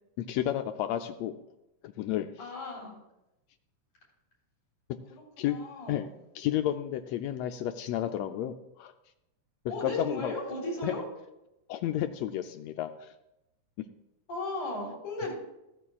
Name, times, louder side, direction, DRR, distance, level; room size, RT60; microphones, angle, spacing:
voice 1, 0.2-1.4 1.8-2.3 5.4-5.6 5.9-6.1 6.3-8.9 9.8-10.3 10.8-10.9 11.7-13.1, left 11 dB, 90° left, 8 dB, 1.5 m, -31 dB
voice 2, 2.4-3.0 5.1-6.1 9.7-11.0 14.3-15.3, left 2 dB, 70° left, -5 dB, 5.6 m, -36 dB
14.0 x 14.0 x 2.4 m, 0.90 s
omnidirectional pair, 3.6 m